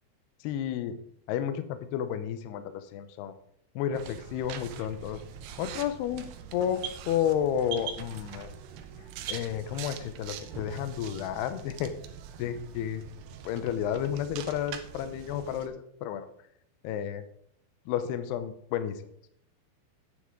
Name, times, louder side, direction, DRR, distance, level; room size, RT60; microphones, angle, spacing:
voice 1, 0.4-1.0 1.3-3.3 3.8-5.2 5.6-6.3 6.5-8.5 9.3-11.9 12.4-13.0 13.5-15.8 16.0-16.3 16.8-17.2 17.9-19.0, left 9 dB, 85° left, 11 dB, 2.3 m, -31 dB
sound 1, 3.9-15.7, right 8 dB, 90° right, 2.2 m, -44 dB
sound 2, 4.8-10.3, right 8 dB, 75° right, 2.8 m, -45 dB
9.6 x 9.5 x 3.7 m, 0.70 s
omnidirectional pair, 5.7 m